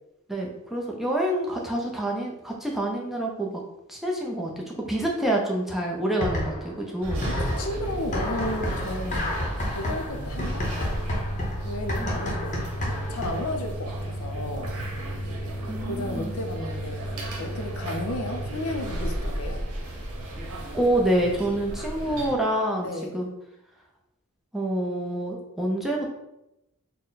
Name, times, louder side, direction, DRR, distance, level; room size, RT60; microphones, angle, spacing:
voice 1, 0.3-3.6 3.9-7.2 12.0-12.2 15.7-16.3 20.7-23.3 24.5-26.1, right 1 dB, ahead, -2 dB, 0.5 m, -27 dB
sound 1, 6.2-6.8 7.1-13.6, left 1 dB, 35° left, 0.7 m, -30 dB
sound 2, 7.0-22.3, right 1 dB, 80° right, 0.9 m, -33 dB
voice 2, 7.3-9.2 9.7-10.7 11.6-14.7 15.9-17.0 17.4-19.6 22.8-23.1, left 1 dB, 70° left, 4 dB, 0.5 m, -33 dB
4.1 x 2.1 x 3.9 m, 0.90 s
head